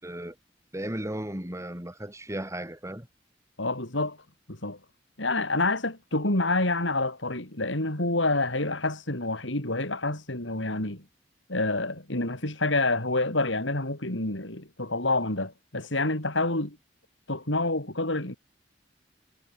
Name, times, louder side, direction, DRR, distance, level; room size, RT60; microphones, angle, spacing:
voice 1, 0.0-0.4 0.7-3.1, right 1 dB, 15° right, 6.6 m, -35 dB
voice 2, 3.6-4.2 4.5-4.8 5.2-11.0 11.5-16.8 17.3-18.4, left 2 dB, 80° left, 6.0 m, -28 dB
head